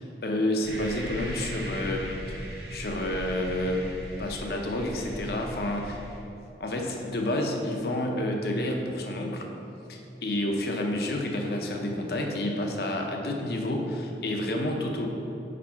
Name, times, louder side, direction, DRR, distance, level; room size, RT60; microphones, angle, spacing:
voice 1, 0.2-2.4 2.7-6.0 6.6-9.5 9.9-15.1, left 1 dB, 55° left, 2 dB, 0.7 m, -29 dB
sound 1, 0.6-6.2, equal, 60° right, 1.1 m, -38 dB
5.0 x 4.5 x 5.6 m, 2.8 s
head